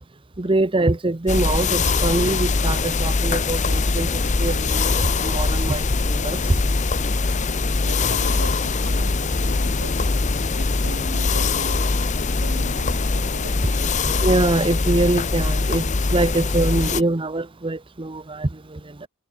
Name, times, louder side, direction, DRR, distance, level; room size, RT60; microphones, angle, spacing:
voice 1, 0.4-6.6 14.1-19.1, right 2 dB, 25° right, 0.8 m, -24 dB
sound 1, 1.3-17.0, left 3 dB, 40° left, 0.8 m, -22 dB
voice 2, 7.8-10.0 10.5-11.9 12.2-14.2, right 2 dB, 80° right, 7.8 m, -39 dB
head